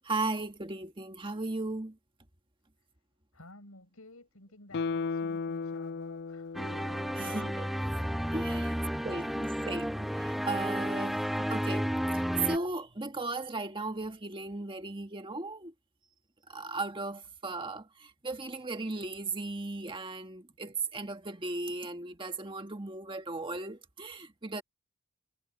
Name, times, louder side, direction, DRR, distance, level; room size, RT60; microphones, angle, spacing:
voice 1, 0.0-2.0 7.2-7.7 8.3-8.7 9.0-15.7 16.5-24.6, right 3 dB, 25° right, 1.7 m, -36 dB
voice 2, 3.3-6.9 7.2-8.0, left 2 dB, 75° left, 6.1 m, -54 dB
Guitar, 4.7-8.0 8.4-8.5, left 4 dB, 50° left, 0.4 m, -36 dB
sound 1, 6.5-12.6, equal, ahead, 0.6 m, -32 dB
head